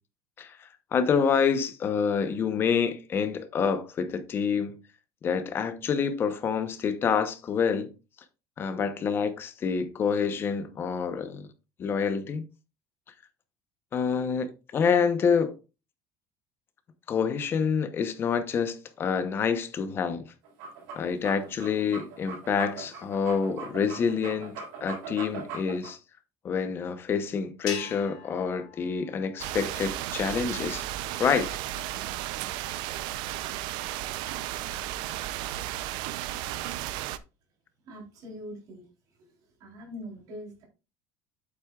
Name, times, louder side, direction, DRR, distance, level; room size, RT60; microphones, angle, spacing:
voice 1, 0.4-4.8 5.2-7.9 8.6-11.5 11.8-12.4 13.9-15.6 17.1-20.2 20.9-26.0 26.4-30.9 31.2-31.5, left 6 dB, 25° left, 0.8 m, -27 dB
sound 1, 20.4-25.9, right 5 dB, 80° right, 4.2 m, -40 dB
sound 2, 27.7-30.1, left 7 dB, 50° left, 2.0 m, -42 dB
sound 3, 29.4-37.2, right 14 dB, 60° right, 0.5 m, -34 dB
voice 2, 37.9-38.9 39.6-40.6, equal, 45° right, 3.6 m, -42 dB
8.4 x 7.7 x 2.4 m
cardioid pair, 175°, 9 cm